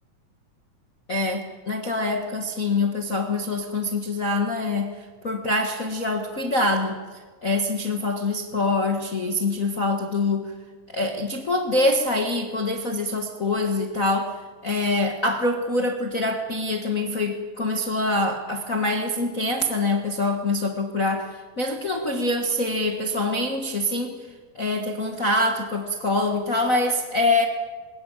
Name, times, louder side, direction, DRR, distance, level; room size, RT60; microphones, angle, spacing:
voice 1, 1.1-10.5 10.9-14.3 14.6-24.2 24.5-27.5, left 2 dB, 60° left, 3 dB, 0.8 m, -25 dB
22.0 x 20.0 x 9.0 m, 1.5 s
omnidirectional pair, 4.1 m